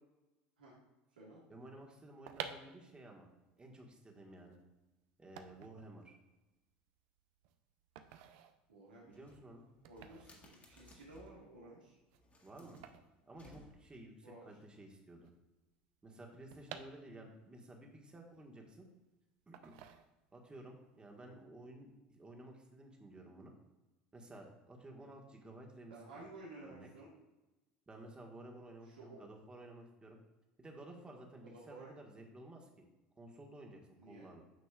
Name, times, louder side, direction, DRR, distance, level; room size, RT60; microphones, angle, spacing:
voice 1, 1.5-3.3 3.6-4.6 5.2-6.1 9.1-9.7 12.4-12.8 13.3-15.3 16.0-18.9 19.5-19.8 20.3-23.5 24.1-26.3 26.6-26.9 27.9-30.2 30.6-32.8 33.2-34.4, right 1 dB, 20° right, 1 dB, 1.6 m, -54 dB
sound 1, 2.2-14.1 14.4-14.5 14.7-17.5 17.9-19.0 19.5-20.5 20.9-21.2, right 9 dB, 65° right, 0.6 m, -52 dB
voice 2, 8.7-9.3 9.8-11.9 14.2-14.5 25.9-27.1 28.9-29.2 31.4-31.9 34.0-34.3, right 2 dB, 90° right, -5 dB, 1.7 m, -54 dB
sound 2, 9.1-11.5 12.1-14.1, left 1 dB, 30° left, 1.8 m, -62 dB
9.4 x 6.0 x 2.4 m, 1.1 s
hypercardioid pair, 80°, 5 cm